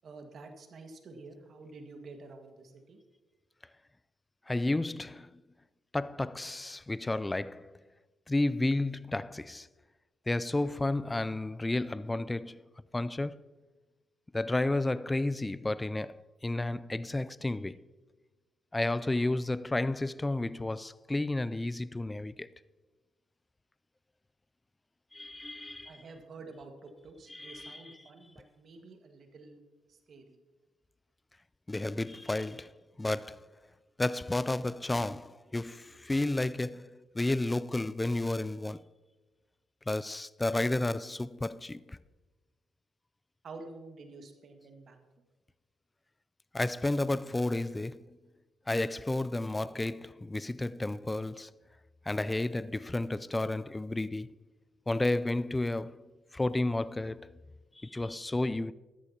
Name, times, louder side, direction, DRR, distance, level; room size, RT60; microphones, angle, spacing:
voice 1, 0.0-3.0 25.8-29.6 29.9-30.4 43.4-45.0, right 3 dB, 60° right, 1.7 m, -49 dB
voice 2, 4.5-5.3 5.9-7.8 8.3-9.7 10.3-12.6 12.9-13.4 14.3-17.8 18.7-22.5 25.1-25.9 27.3-28.0 31.7-33.5 34.0-36.9 37.1-38.8 39.9-42.0 46.5-48.2 48.7-51.5 52.1-54.4 54.9-56.0 56.3-57.3 57.8-58.7, left 2 dB, 15° left, 0.3 m, -32 dB
13.5 x 13.0 x 2.9 m
cardioid pair, 75°, 0 cm